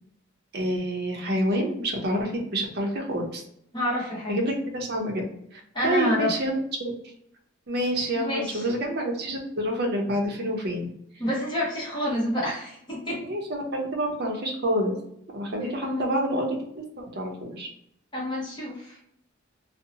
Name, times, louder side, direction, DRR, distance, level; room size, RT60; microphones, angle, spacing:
voice 1, 0.5-3.4 4.3-5.2 5.5-6.9 7.7-10.9 13.2-14.9 15.3-17.7, right 1 dB, 50° right, 1 dB, 0.6 m, -28 dB
voice 2, 3.7-4.4 5.7-6.4 8.1-8.7 11.2-13.2 15.6-16.1 18.1-19.0, left 1 dB, 20° left, -5 dB, 0.9 m, -28 dB
2.7 x 2.0 x 2.6 m, 0.71 s
head